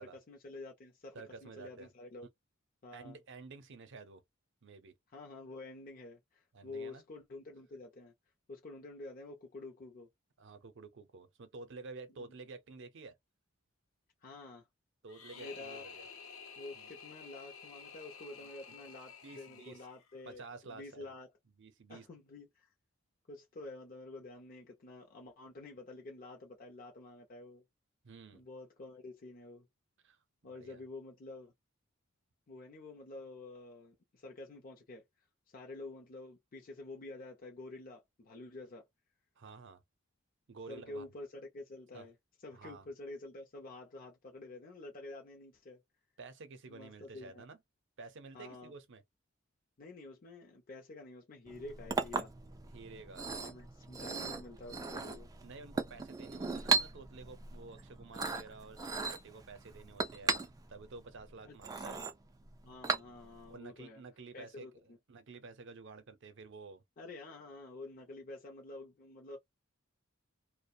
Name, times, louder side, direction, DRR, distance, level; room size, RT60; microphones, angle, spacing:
voice 1, 0.0-2.3 2.8-3.2 5.1-8.1 8.5-10.1 12.2-12.3 14.2-14.7 15.4-15.8 16.6-21.3 21.9-22.7 23.3-27.6 28.3-29.7 30.4-31.5 32.5-35.0 35.5-38.8 40.7-42.1 42.4-45.8 46.7-47.4 48.3-48.7 49.8-52.3 53.3-55.3 61.5-62.1 62.6-64.0 64.3-65.0 67.0-69.4, left 2 dB, 40° left, 0.5 m, -49 dB
voice 2, 1.1-1.9 2.9-4.2 4.6-4.9 6.5-7.0 10.4-13.2 15.0-16.1 16.7-16.9 18.4-18.8 19.2-19.9 20.3-21.1 21.6-22.1 28.0-28.4 30.0-30.2 30.5-30.8 39.4-39.8 40.5-41.1 41.9-42.1 42.5-42.9 46.2-47.6 48.0-49.0 52.7-53.3 55.4-62.0 63.5-66.8, right 3 dB, 60° right, 0.6 m, -51 dB
sound 1, 15.1-20.2, left 5 dB, 80° left, 0.7 m, -51 dB
Chink clink, 51.5-63.5, right 4 dB, 15° right, 0.3 m, -37 dB
2.3 x 2.1 x 2.6 m
head